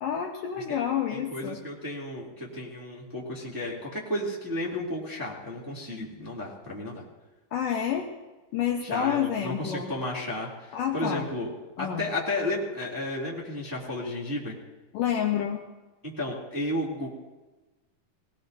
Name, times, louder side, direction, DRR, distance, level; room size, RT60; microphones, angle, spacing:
voice 1, 0.0-1.6 7.5-8.1 8.5-9.9 10.7-11.3 11.8-12.1 14.9-15.6, left 9 dB, 75° left, 1 dB, 2.2 m, -28 dB
voice 2, 1.1-7.0 8.8-11.5 11.8-14.6 16.0-17.1, left 1 dB, 5° right, -5 dB, 1.7 m, -33 dB
21.5 x 17.5 x 2.7 m, 1.1 s
omnidirectional pair, 4.6 m